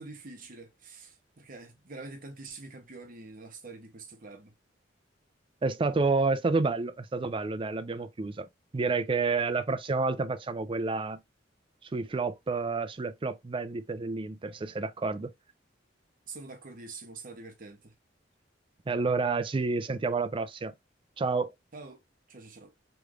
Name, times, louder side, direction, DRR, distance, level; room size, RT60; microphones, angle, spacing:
voice 1, 0.0-4.5 16.3-17.9 21.7-22.0 22.3-22.7, right 3 dB, 50° right, 0.9 m, -45 dB
voice 2, 5.6-8.5 8.7-11.2 11.8-15.3 18.9-20.7 21.2-21.5, right 3 dB, 30° right, 0.4 m, -29 dB
3.2 x 3.1 x 2.4 m
head